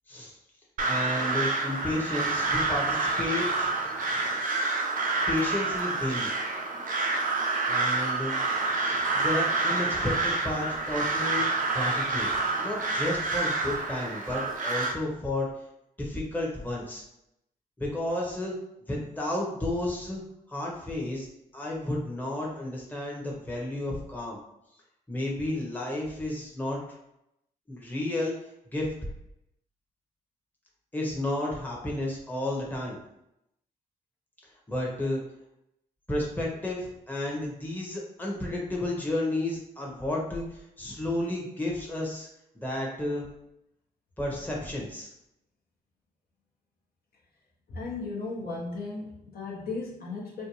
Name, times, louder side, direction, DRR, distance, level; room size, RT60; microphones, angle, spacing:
voice 1, 0.8-3.7 5.3-6.3 7.7-8.4 9.1-11.4 11.7-12.3 12.6-15.5 16.0-17.0 17.8-18.5 18.9-20.2 20.5-21.3 21.5-24.4 25.1-26.8 27.7-28.3 28.7-28.9 30.9-33.0 34.7-35.2 36.1-42.3 42.5-43.3 44.2-45.1, left 1 dB, 10° left, -3 dB, 0.9 m, -32 dB
Crow, 0.8-14.9, right 3 dB, 50° right, 0.5 m, -28 dB
voice 2, 47.7-50.5, left 3 dB, 55° left, -3 dB, 0.9 m, -36 dB
2.6 x 2.1 x 3.0 m, 0.82 s
hypercardioid pair, 40°, 19 cm